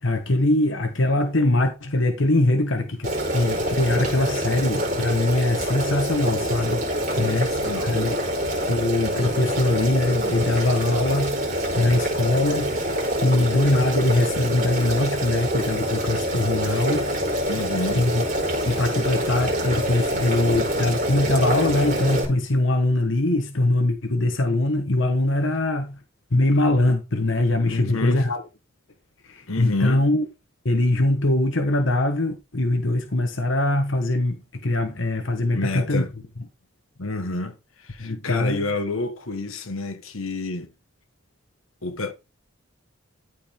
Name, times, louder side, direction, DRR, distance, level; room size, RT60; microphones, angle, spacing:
voice 1, 0.0-6.9 7.2-8.2 8.7-12.9 13.2-17.1 17.9-18.2 18.6-26.0 26.3-28.4 29.2-30.2 30.6-36.0 38.0-38.7, left 2 dB, 65° left, 1.2 m, -22 dB
Boiling, 3.0-22.2, equal, 35° right, 4.2 m, -26 dB
voice 2, 7.4-8.0 17.5-18.1 27.7-28.2 29.5-30.1 35.5-36.1 37.0-40.7 41.8-42.1, left 2 dB, 80° left, 1.4 m, -29 dB
13.5 x 4.8 x 3.6 m
head